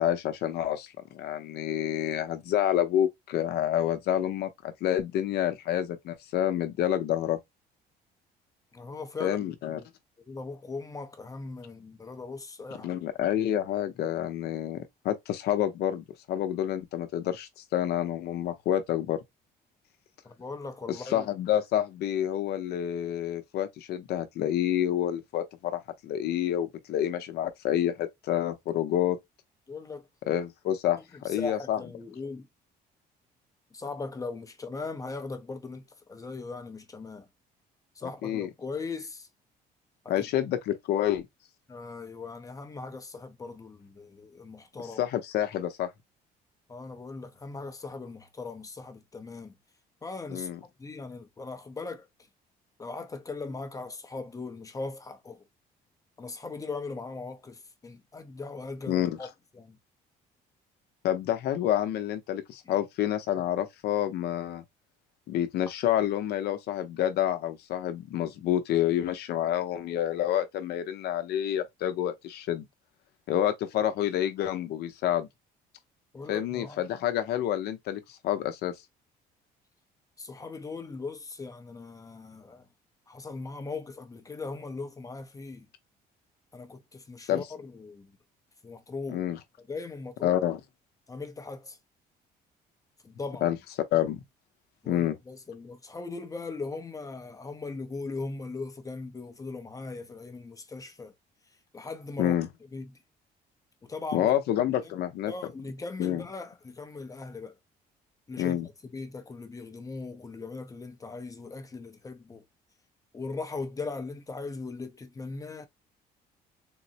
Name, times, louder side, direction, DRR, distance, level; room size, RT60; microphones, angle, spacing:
voice 1, 0.0-7.4 9.2-9.8 12.8-19.2 20.9-29.2 30.3-31.0 31.2-31.8 38.2-38.5 40.1-41.3 45.0-45.9 50.3-50.6 58.9-59.2 61.0-64.6 65.3-72.6 73.3-75.3 76.3-78.7 87.3-87.4 89.1-89.4 90.2-90.6 93.4-93.6 93.9-94.2 94.9-95.2 102.2-102.5 104.1-105.3 106.0-106.2 108.4-108.7, left 11 dB, 75° left, 0.7 m, -28 dB
voice 2, 8.7-9.4 9.7-9.9 10.3-13.0 20.2-21.3 29.7-30.0 31.1-32.5 33.7-37.3 37.9-39.3 40.0-40.1 41.7-45.0 46.7-49.5 50.0-50.5 50.8-52.1 52.8-55.4 56.2-59.8 62.7-62.8 73.7-73.8 76.1-76.8 80.2-82.7 83.1-85.7 86.5-88.2 88.6-89.2 89.6-90.4 91.1-91.8 93.0-93.5 94.8-101.1 101.7-102.4 102.7-103.0 103.8-104.3 104.8-104.9 105.3-107.6 108.3-112.4 113.1-115.7, left 3 dB, 20° left, 0.6 m, -39 dB
3.7 x 2.0 x 2.7 m
cardioid pair, 110°, 17 cm